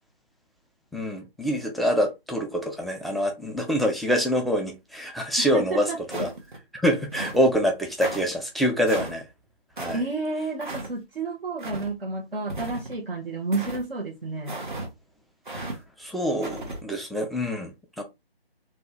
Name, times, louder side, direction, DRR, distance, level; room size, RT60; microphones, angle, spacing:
voice 1, 0.9-6.3 6.7-9.3 9.8-10.0 15.5-18.0, equal, ahead, 0.3 m, -26 dB
voice 2, 5.4-6.0 9.9-14.5, right 3 dB, 70° right, 1.0 m, -31 dB
sound 1, 6.1-6.6 7.1-7.5 8.0-8.2 8.9-9.2 9.8-10.0 10.6-10.9 11.6-11.9 12.5-13.0 13.5-13.8 14.5-14.9 15.5-15.8 16.4-16.8, right 2 dB, 50° right, 1.2 m, -34 dB
4.0 x 2.3 x 2.9 m
figure-of-eight pair, 170°, 30 cm